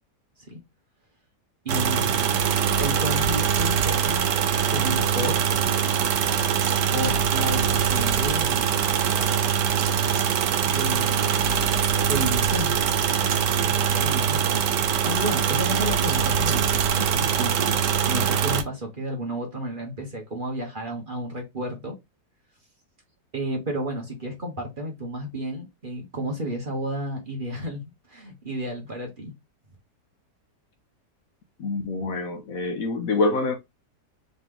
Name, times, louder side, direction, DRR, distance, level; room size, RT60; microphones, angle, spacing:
voice 1, 1.6-4.2 4.7-5.4 6.9-8.8 10.6-11.4 12.0-12.8 13.6-17.8 18.1-21.9 23.3-29.3, right 1 dB, 35° right, 1.2 m, -32 dB
sound 1, 1.7-18.6, right 7 dB, 80° right, 1.3 m, -23 dB
voice 2, 31.6-33.6, left 3 dB, 60° left, 1.1 m, -26 dB
3.9 x 3.1 x 3.6 m
omnidirectional pair, 1.8 m